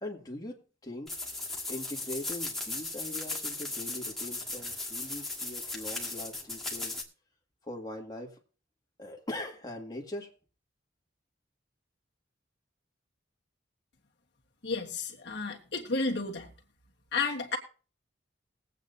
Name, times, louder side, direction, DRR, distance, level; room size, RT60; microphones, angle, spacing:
voice 1, 0.0-1.1 1.7-6.9 7.6-8.4 9.0-10.3, left 1 dB, 20° left, 1.9 m, -41 dB
sound 1, 1.1-7.0, left 2 dB, ahead, 1.6 m, -37 dB
voice 2, 14.6-16.5 17.1-17.6, left 3 dB, 60° left, 1.4 m, -32 dB
21.0 x 8.4 x 2.6 m
head